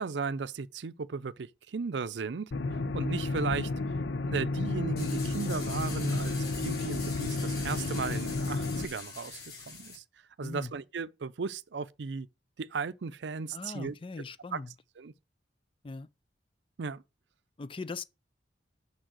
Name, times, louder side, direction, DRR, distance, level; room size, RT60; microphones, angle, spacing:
voice 1, 0.0-3.7 4.3-6.3 6.6-9.4 9.7-10.0 10.4-12.3 12.6-14.2 14.5-14.6 15.0-15.1 16.8-17.0, right 5 dB, 70° right, 0.5 m, -36 dB
sound 1, 2.5-8.9, left 2 dB, 80° left, 0.6 m, -32 dB
sound 2, 5.0-10.0, left 4 dB, 60° left, 3.4 m, -43 dB
voice 2, 10.4-10.7 13.5-14.7 15.8-16.1 17.6-18.0, left 3 dB, 30° left, 0.5 m, -40 dB
6.4 x 5.4 x 6.2 m
head